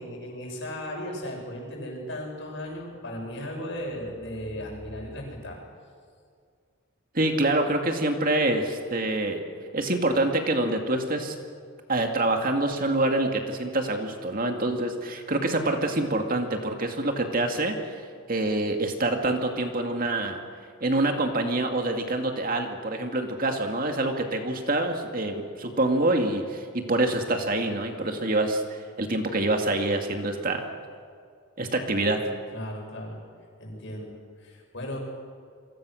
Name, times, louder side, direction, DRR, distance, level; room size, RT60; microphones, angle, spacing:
voice 1, 0.0-5.6 32.5-33.2 33.6-35.0, left 1 dB, 60° left, 0 dB, 7.5 m, -36 dB
voice 2, 7.1-9.4 9.7-11.4 11.9-18.0 18.3-20.4 20.8-28.6 29.0-30.7 31.6-32.2, right 2 dB, 40° right, 4 dB, 2.4 m, -26 dB
29.5 x 24.0 x 6.5 m, 2.2 s
head